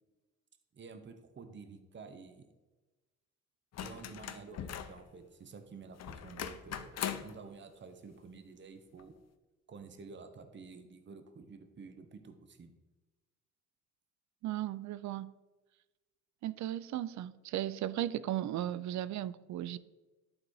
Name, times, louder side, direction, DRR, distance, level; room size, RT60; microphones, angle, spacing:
voice 1, 0.7-2.4 3.8-9.1 9.7-12.7, right 4 dB, 40° right, 8 dB, 1.0 m, -50 dB
sound 1, 3.7-5.0 6.0-7.4 9.0-9.1, left 9 dB, 55° left, 0.7 m, -40 dB
voice 2, 14.4-15.3 16.4-19.8, right 12 dB, 70° right, 17 dB, 0.5 m, -36 dB
12.0 x 4.0 x 4.8 m, 1.2 s
cardioid pair, 90°, 30 cm